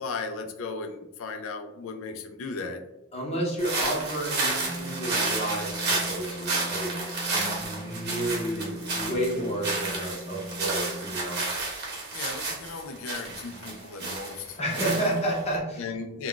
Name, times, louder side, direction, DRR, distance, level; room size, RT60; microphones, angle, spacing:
voice 1, 0.0-2.8 12.1-14.6 15.8-16.3, left 4 dB, 65° left, 6 dB, 0.4 m, -36 dB
voice 2, 3.1-7.0 7.3-11.5 14.6-15.9, right 1 dB, 30° left, -2 dB, 0.7 m, -31 dB
sound 1, 3.6-15.5, right 3 dB, 50° right, 0.9 m, -31 dB
Wind instrument woodwind instrument, 4.7-11.6, equal, 25° right, 0.3 m, -40 dB
2.3 x 2.3 x 3.6 m, 0.89 s
head